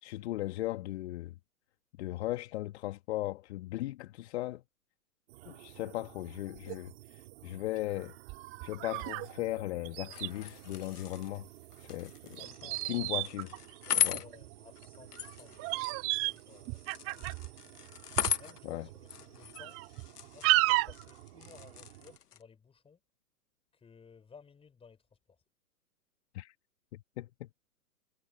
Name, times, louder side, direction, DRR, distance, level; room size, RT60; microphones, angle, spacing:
voice 1, 0.0-1.3 2.0-4.6 5.5-8.1 8.6-11.5 11.8-12.4 12.8-13.5 13.9-14.2 18.6-18.8 26.3-26.5 26.9-27.3, left 16 dB, 45° left, 1.9 m, -37 dB
sound 1, 5.3-22.2, right 18 dB, 45° right, 6.5 m, -53 dB
sound 2, 5.9-6.0 6.6-6.8 7.3-7.4 8.3-9.3 9.6-9.7 9.8-10.3 12.4-14.5 15.2-15.3 15.6-16.4 16.7-17.5 18.2-18.4 18.9-19.0 19.6-20.1 20.4-21.0, right 22 dB, 30° right, 1.7 m, -32 dB
sound 3, 10.0-22.4, left 8 dB, 75° left, 1.2 m, -39 dB
voice 2, 12.4-13.1 14.0-17.8 18.3-19.8 20.3-23.0 23.7-25.0 25.3-25.4, left 6 dB, 10° left, 6.9 m, -57 dB
hypercardioid pair, 125°, 46 cm